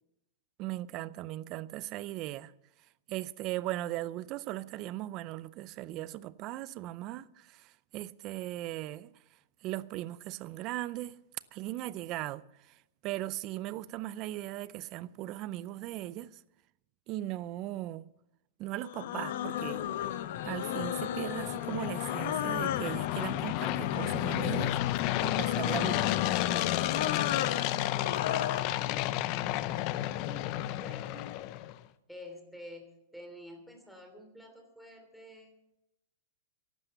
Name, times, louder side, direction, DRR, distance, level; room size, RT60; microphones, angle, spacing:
voice 1, 0.6-2.5 3.1-9.1 9.6-11.2 11.5-12.5 13.0-16.3 17.1-18.1 18.6-19.8 20.4-24.8 25.2-26.1, right 15 dB, 40° right, 0.5 m, -38 dB
sound 1, 18.8-28.7, left 11 dB, 65° left, 1.0 m, -35 dB
sound 2, 19.5-31.8, left 15 dB, 45° left, 0.7 m, -32 dB
voice 2, 26.4-31.4 32.1-35.5, left 1 dB, ahead, 3.1 m, -49 dB
14.5 x 11.5 x 6.9 m
hypercardioid pair, 140°, 0 cm